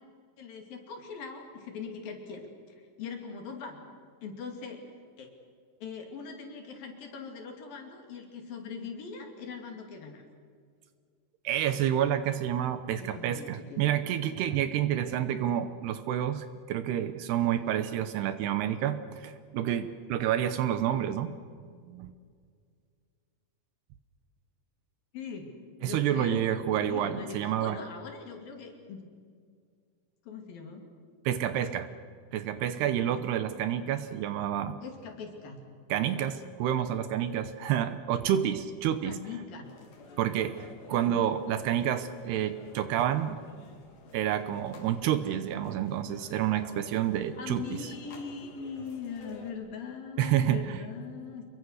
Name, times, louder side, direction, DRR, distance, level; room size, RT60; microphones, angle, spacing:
voice 1, 0.4-3.8 4.2-4.8 5.2-5.3 5.8-10.2 13.0-14.1 25.1-25.5 25.8-26.5 26.8-29.0 30.3-30.8 34.8-35.6 39.0-39.7 41.1-41.2 47.4-51.4, left 5 dB, 55° left, 3 dB, 4.0 m, -41 dB
voice 2, 11.4-21.4 21.9-22.1 25.8-27.8 31.3-31.9 32.3-34.8 35.9-39.2 40.2-43.4 44.1-47.8 50.2-50.8, right 10 dB, 75° right, 11 dB, 2.7 m, -29 dB
sound 1, 39.6-49.5, left 3 dB, 75° left, 5.0 m, -51 dB
27.0 x 22.0 x 6.5 m, 2.1 s
omnidirectional pair, 5.1 m